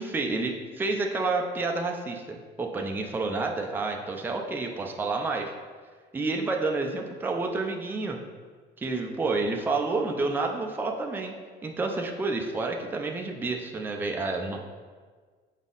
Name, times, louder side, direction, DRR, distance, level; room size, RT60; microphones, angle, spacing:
voice 1, 0.0-5.5 6.1-8.2 8.8-11.3 11.6-14.6, right 3 dB, 10° right, 1 dB, 0.5 m, -29 dB
7.1 x 3.8 x 3.8 m, 1.5 s
cardioid pair, 150°, 19 cm